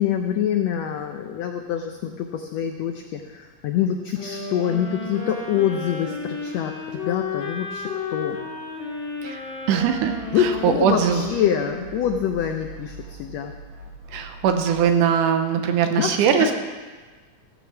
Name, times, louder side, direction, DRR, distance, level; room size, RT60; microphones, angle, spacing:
voice 1, 0.0-8.4 10.3-13.5 16.0-16.5, left 9 dB, 80° left, 5 dB, 1.5 m, -25 dB
sound 1, 4.2-12.1, left 3 dB, 55° left, 3.8 m, -33 dB
voice 2, 9.7-11.2 14.1-16.5, right 7 dB, 75° right, 6 dB, 2.3 m, -21 dB
sound 2, 9.8-11.4 11.7-14.8, right 2 dB, 45° right, 3.8 m, -42 dB
15.5 x 6.0 x 7.1 m, 1.4 s
omnidirectional pair, 3.8 m